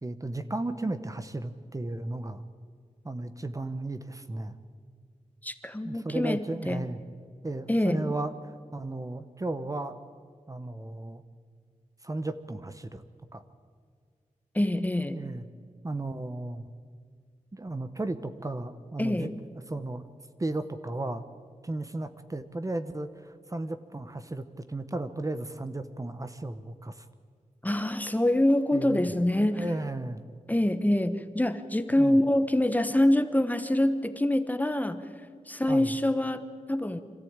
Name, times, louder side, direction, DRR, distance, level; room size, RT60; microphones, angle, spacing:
voice 1, 0.0-2.4 3.0-4.6 5.8-7.0 7.4-8.3 8.7-10.0 10.5-11.2 12.0-13.0 13.3-13.4 15.1-15.4 15.8-16.6 17.5-19.3 19.7-20.0 20.4-21.2 21.6-27.1 28.7-29.1 29.4-30.2 32.0-32.2 35.7-35.9, right 2 dB, 25° right, 10 dB, 1.0 m, -34 dB
voice 2, 5.4-6.9 7.7-8.0 14.5-15.2 19.0-19.3 27.6-29.6 30.5-35.0 35.5-36.4 36.7-37.0, left 1 dB, 10° left, 10 dB, 1.0 m, -25 dB
26.0 x 14.0 x 8.9 m, 2.1 s
wide cardioid pair, 100°, 13 cm